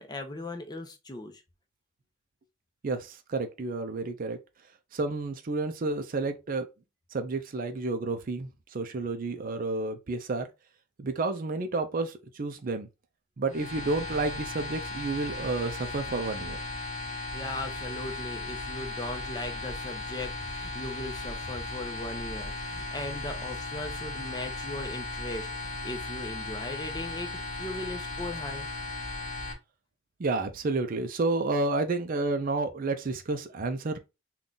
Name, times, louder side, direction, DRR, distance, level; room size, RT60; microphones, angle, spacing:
voice 1, 0.0-1.4 17.1-28.7, left 2 dB, 20° left, 0.7 m, -38 dB
voice 2, 2.8-4.4 4.9-6.7 7.1-10.5 11.0-12.9 13.4-16.6 30.2-34.0, right 3 dB, 45° right, 0.4 m, -30 dB
sound 1, 13.5-29.5, left 2 dB, 40° left, 1.2 m, -36 dB
3.8 x 2.3 x 3.7 m
head